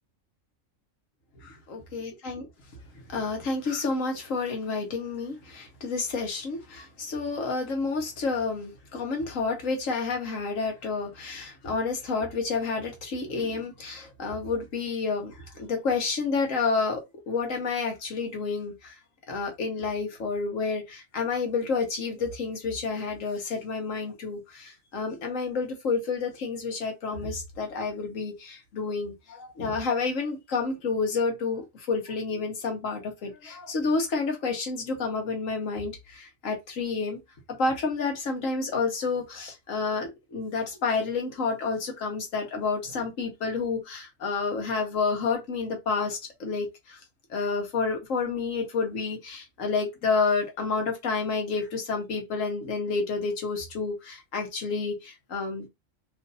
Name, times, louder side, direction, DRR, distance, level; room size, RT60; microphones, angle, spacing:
voice 1, 1.4-2.5 3.1-18.9 19.3-37.2 37.6-47.0 47.3-55.7, left 4 dB, 80° left, 1.5 m, -30 dB
3.1 x 2.6 x 3.9 m
omnidirectional pair, 1.4 m